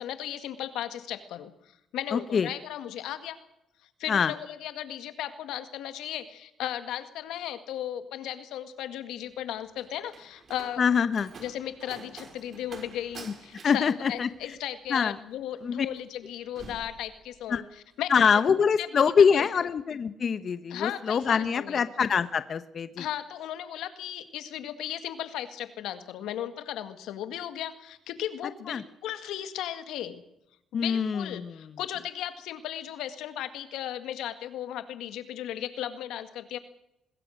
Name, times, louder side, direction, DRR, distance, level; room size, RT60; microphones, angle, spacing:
voice 1, 0.0-1.5 1.9-3.4 4.0-10.8 11.4-18.3 18.8-19.5 20.7-21.8 23.0-30.2 30.7-36.6, left 11 dB, 85° left, 10 dB, 1.9 m, -36 dB
voice 2, 2.1-2.5 4.1-4.3 10.8-11.3 13.6-14.3 14.9-15.1 15.6-15.9 17.5-17.6 18.1-23.1 28.7-28.8 30.7-31.5, left 6 dB, 50° left, 12 dB, 1.0 m, -24 dB
Slam, 9.3-17.7 18.0-18.5, right 4 dB, 50° right, 5.4 m, -49 dB
22.5 x 21.5 x 6.5 m, 0.83 s
cardioid pair, 90°, 0 cm